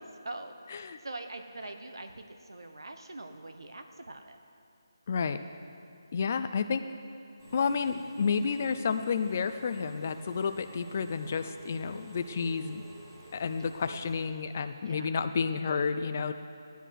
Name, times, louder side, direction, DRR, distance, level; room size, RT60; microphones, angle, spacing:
voice 1, 0.2-4.4 13.9-14.1 14.8-15.1, right 2 dB, 80° right, 6 dB, 1.0 m, -43 dB
voice 2, 5.1-5.4 6.1-6.8 7.5-12.8 13.3-16.3, left 5 dB, 25° left, 9 dB, 0.4 m, -30 dB
Engine / Mechanisms, 7.4-14.3, right 1 dB, 45° right, 2.9 m, -50 dB
15.0 x 10.0 x 4.6 m, 2.8 s
figure-of-eight pair, 175°, 2 cm